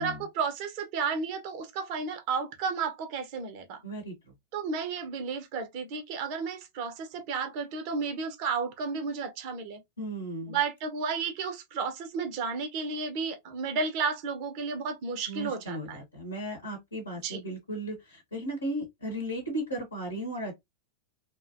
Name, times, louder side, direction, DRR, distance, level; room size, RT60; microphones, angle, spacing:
voice 1, 0.0-3.8 4.5-9.8 10.5-16.0 17.2-17.4, right 5 dB, 45° right, 0.5 m, -32 dB
voice 2, 3.8-4.1 10.0-10.6 15.3-20.5, right 1 dB, 80° left, 0.9 m, -35 dB
2.4 x 2.1 x 2.4 m
figure-of-eight pair, 90°, 0 cm